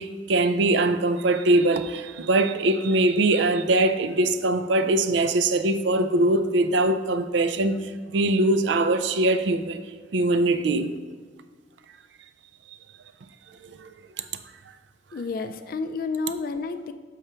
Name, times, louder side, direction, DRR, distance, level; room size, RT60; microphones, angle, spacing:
voice 1, 0.0-9.8 10.1-10.9 13.6-13.9 14.2-14.3, right 2 dB, 80° right, 0.4 m, -22 dB
voice 2, 15.1-16.9, left 4 dB, 50° left, 0.3 m, -30 dB
6.6 x 4.9 x 4.3 m
head